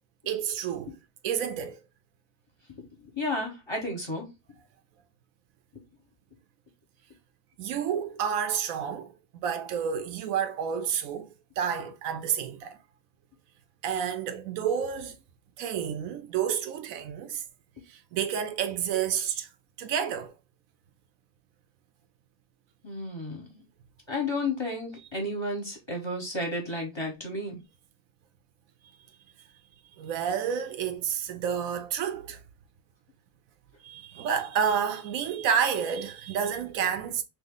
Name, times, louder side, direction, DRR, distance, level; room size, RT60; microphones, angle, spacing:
voice 1, 0.3-0.9 1.2-1.8 7.6-9.1 9.4-11.3 11.6-12.8 13.8-15.2 15.6-17.4 17.9-19.5 19.8-20.3 30.0-32.4 33.8-37.2, right 8 dB, 80° right, 1.0 m, -29 dB
voice 2, 3.2-4.3 22.8-23.5 24.1-27.6, left 2 dB, 20° left, 1.0 m, -32 dB
3.0 x 2.7 x 3.7 m
omnidirectional pair, 1.4 m